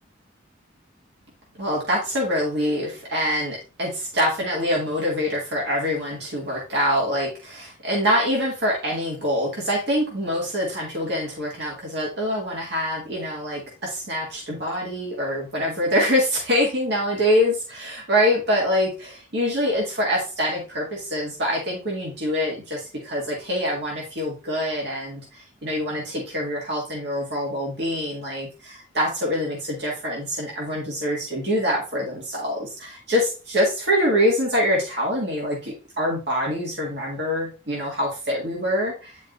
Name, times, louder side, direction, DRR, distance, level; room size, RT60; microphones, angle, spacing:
voice 1, 1.6-39.2, equal, 55° right, -3 dB, 1.9 m, -25 dB
9.3 x 5.2 x 2.6 m, 0.34 s
head